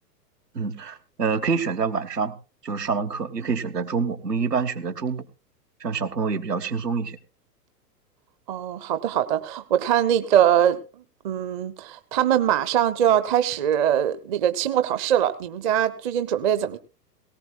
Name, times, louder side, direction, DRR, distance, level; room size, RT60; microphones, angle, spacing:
voice 1, 0.5-2.3 2.6-5.3 5.8-7.2, right 5 dB, 75° right, 8 dB, 1.5 m, -26 dB
voice 2, 8.5-10.8 11.2-16.8, right 10 dB, 30° right, 11 dB, 0.7 m, -22 dB
18.0 x 18.0 x 2.4 m, 0.31 s
figure-of-eight pair, 110°, 49 cm